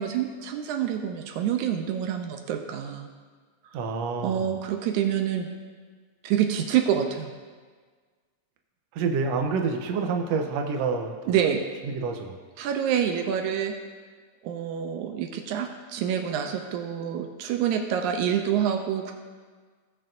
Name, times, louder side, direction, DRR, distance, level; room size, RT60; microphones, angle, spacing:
voice 1, 0.0-3.1 4.2-5.5 6.2-7.3 11.3-11.6 12.6-13.7 14.4-19.1, right 9 dB, 85° right, 5 dB, 2.1 m, -27 dB
voice 2, 3.7-4.6 8.9-11.4 11.8-12.3, right 4 dB, 70° right, 3 dB, 1.8 m, -28 dB
18.5 x 6.5 x 2.6 m, 1.5 s
omnidirectional pair, 3.4 m